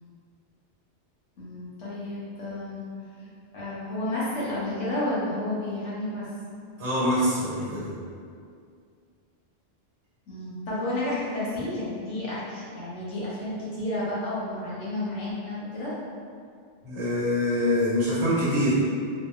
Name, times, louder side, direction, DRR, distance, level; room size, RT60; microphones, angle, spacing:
voice 1, 1.4-2.8 3.1-3.3 3.5-6.3 10.3-16.0, left 1 dB, 85° left, -8 dB, 1.1 m, -31 dB
voice 2, 6.8-7.9 16.8-18.7, left 1 dB, 75° right, -10 dB, 1.3 m, -24 dB
2.8 x 2.4 x 2.3 m, 2.2 s
omnidirectional pair, 1.2 m